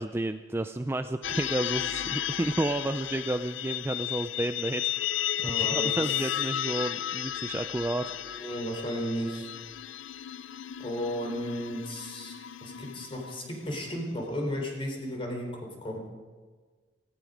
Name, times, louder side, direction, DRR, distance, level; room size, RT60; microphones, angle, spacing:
voice 1, 0.0-5.1 5.4-8.1, right 1 dB, 15° right, 9 dB, 0.4 m, -31 dB
sound 1, 1.2-13.8, left 12 dB, 80° left, 0.4 m, -34 dB
voice 2, 5.4-6.0 8.3-9.5 10.8-12.3 12.6-16.0, equal, 30° left, 1 dB, 4.0 m, -34 dB
17.5 x 16.0 x 5.1 m, 1.4 s
head